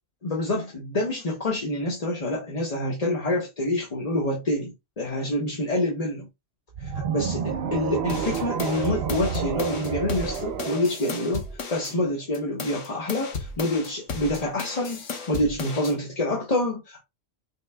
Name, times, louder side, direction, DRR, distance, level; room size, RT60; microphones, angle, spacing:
voice 1, 0.2-6.3 6.8-11.4 11.7-17.0, left 1 dB, 35° left, 0.9 m, -27 dB
sound 1, 6.7-12.0, right 7 dB, 60° right, 0.8 m, -30 dB
sound 2, 8.1-12.0 12.3-16.0, left 4 dB, 85° left, 1.4 m, -35 dB
5.9 x 3.2 x 2.2 m
omnidirectional pair, 1.2 m